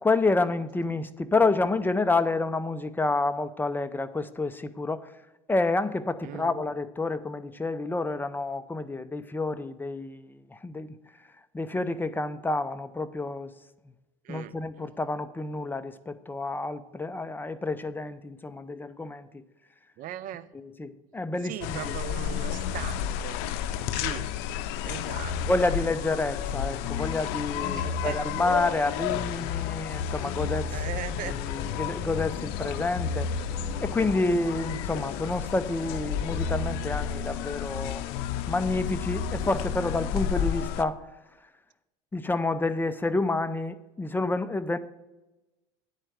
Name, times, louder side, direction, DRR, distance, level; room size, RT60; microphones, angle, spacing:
voice 1, 0.0-5.1 5.5-11.0 11.5-13.5 14.3-19.4 20.5-22.0 25.5-30.8 31.2-33.3 33.8-38.0 38.5-41.1 42.1-44.8, left 2 dB, 10° left, 0.6 m, -29 dB
voice 2, 6.2-6.6 14.2-14.5 20.0-20.5 21.4-23.4 23.9-24.3 24.8-25.4 25.7-25.8 27.7-28.3 30.7-31.4, right 12 dB, 50° right, 0.5 m, -38 dB
sound 1, 21.6-40.8, left 8 dB, 65° left, 0.6 m, -31 dB
sound 2, 30.1-37.4, right 2 dB, 15° right, 3.5 m, -48 dB
9.7 x 4.5 x 7.7 m
supercardioid pair, 100°, 18 cm